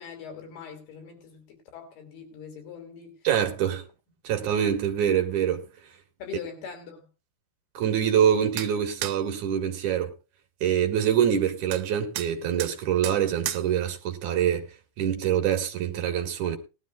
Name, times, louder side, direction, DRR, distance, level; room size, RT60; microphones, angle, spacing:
voice 1, 0.0-3.2 6.2-7.1, left 7 dB, 80° left, 4.8 m, -42 dB
voice 2, 3.2-3.9 4.2-5.7 7.7-10.1 10.6-14.7 15.0-16.6, right 9 dB, 55° right, 2.9 m, -25 dB
sound 1, 8.6-8.7 9.0-9.2 11.7-11.8 12.2-12.3 12.6-12.7 13.0-13.2 13.5-13.7, right 13 dB, 85° right, 2.7 m, -33 dB
18.5 x 13.0 x 2.4 m
omnidirectional pair, 4.5 m